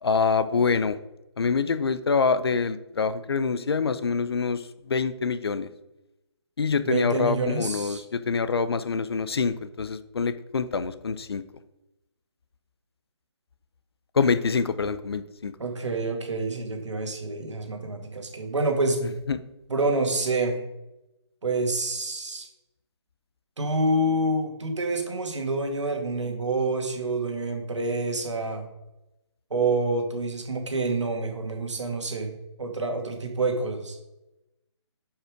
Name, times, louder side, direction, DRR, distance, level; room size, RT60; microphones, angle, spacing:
voice 1, 0.0-1.0 1.4-5.7 6.6-11.4 14.1-15.5 19.3-19.4, left 5 dB, 55° left, 14 dB, 0.6 m, -25 dB
voice 2, 6.8-8.0 15.6-19.2 19.7-20.6 21.4-22.5 23.6-28.6 29.5-32.3 32.6-34.0, right 2 dB, 75° right, 4 dB, 2.1 m, -27 dB
8.9 x 5.6 x 5.0 m, 0.95 s
hypercardioid pair, 170°, 15 cm